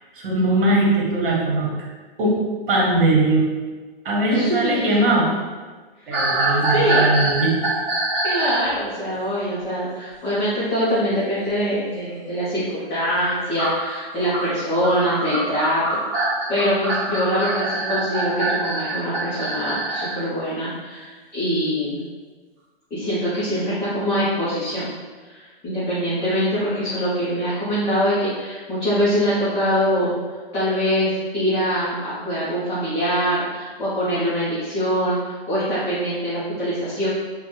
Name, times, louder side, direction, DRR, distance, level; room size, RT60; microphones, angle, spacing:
voice 1, 0.1-1.9 2.2-2.4 2.7-3.4 4.0-5.3 6.1-7.5, right 2 dB, 60° right, -3 dB, 1.2 m, -20 dB
voice 2, 4.3-4.9 6.7-7.1 8.2-22.0 22.9-24.9 25.3-30.1 30.5-37.1, equal, 10° left, -12 dB, 0.5 m, -23 dB
sound 1, 6.1-8.7 13.6-20.2, right 2 dB, 5° right, 1.3 m, -24 dB
3.8 x 2.2 x 3.0 m, 1.4 s
hypercardioid pair, 155°, 30 cm